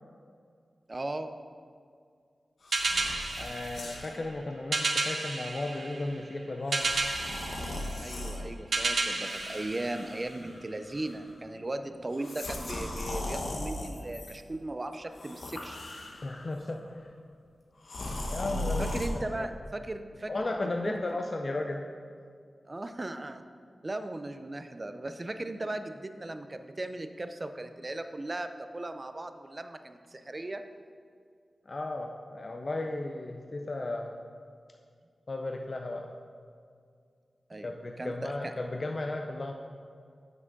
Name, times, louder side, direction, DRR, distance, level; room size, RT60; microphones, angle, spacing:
voice 1, 0.9-1.3 7.9-15.8 18.8-20.5 20.8-21.1 22.6-23.4 23.8-30.6 37.5-38.5, right 2 dB, 30° right, 8 dB, 0.4 m, -37 dB
sound 1, 2.6-4.2 4.9-5.1 6.7-8.4 9.2-10.6 10.9-11.3 12.1-14.4 15.1-16.5 17.8-19.1, left 1 dB, 70° left, 0.9 m, -38 dB
sound 2, 2.7-10.6, right 3 dB, 70° right, 0.7 m, -33 dB
voice 2, 3.4-6.9 16.2-17.1 18.3-19.5 20.3-21.8 31.7-34.1 35.3-36.1 37.6-39.5, left 2 dB, 40° left, 2 dB, 0.4 m, -35 dB
7.4 x 6.0 x 3.9 m, 2.2 s
wide cardioid pair, 100°, 0 cm